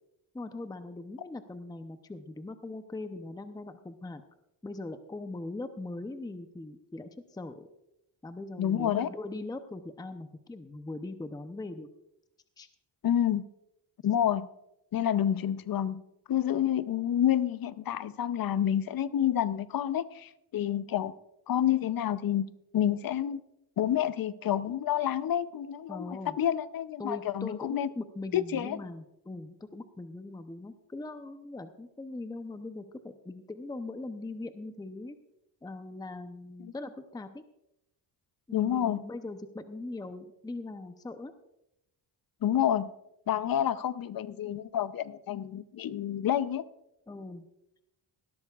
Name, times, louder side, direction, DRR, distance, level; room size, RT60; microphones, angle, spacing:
voice 1, 0.3-4.2 4.6-7.7 8.2-11.9 12.6-12.7 25.9-26.4 27.0-35.2 35.6-37.4 38.5-41.3 47.1-47.4, left 2 dB, 10° left, 9 dB, 0.6 m, -40 dB
voice 2, 8.6-9.1 13.0-13.4 14.0-14.5 14.9-16.0 16.3-21.1 21.5-22.5 22.7-23.4 23.8-27.9 28.3-28.8 36.6-36.7 38.5-39.0 42.4-42.9 43.3-46.6, left 10 dB, 50° left, 15 dB, 0.7 m, -28 dB
18.0 x 12.5 x 2.4 m, 0.85 s
cardioid pair, 95°, 46 cm